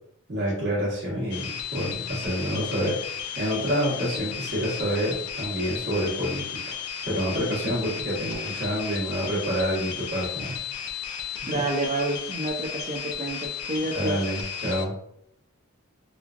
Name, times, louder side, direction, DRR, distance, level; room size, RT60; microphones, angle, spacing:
voice 1, 0.3-6.6 7.0-10.5 13.9-14.9, equal, 50° right, -5 dB, 1.2 m, -28 dB
sound 1, 1.3-14.9, left 8 dB, 80° left, 0.4 m, -34 dB
voice 2, 11.5-14.2, right 2 dB, 35° right, 1 dB, 0.5 m, -29 dB
3.0 x 2.4 x 2.4 m, 0.72 s
head